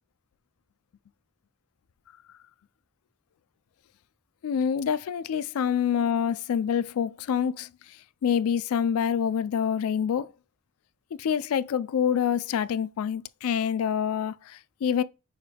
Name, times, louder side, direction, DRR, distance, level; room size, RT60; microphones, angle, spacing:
voice 1, 4.4-7.7 8.2-10.3 11.2-15.0, left 8 dB, 80° left, 0.3 m, -26 dB
6.3 x 2.2 x 3.4 m
head